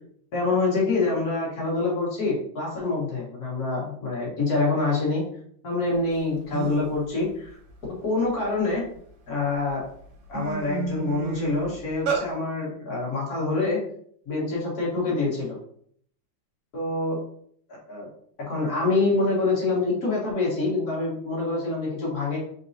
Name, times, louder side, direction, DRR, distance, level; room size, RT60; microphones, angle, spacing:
voice 1, 0.3-5.2 5.6-7.6 8.0-8.8 9.3-9.8 10.3-13.8 14.2-15.6 16.7-17.2 17.9-18.1 18.5-22.4, left 3 dB, 55° left, -5 dB, 1.0 m, -26 dB
sound 1, 6.2-6.3 6.5-6.9 7.4-9.0 9.5-9.7 10.0-12.2, right 5 dB, 70° right, 1.8 m, -31 dB
4.6 x 4.0 x 2.7 m, 0.63 s
omnidirectional pair, 3.9 m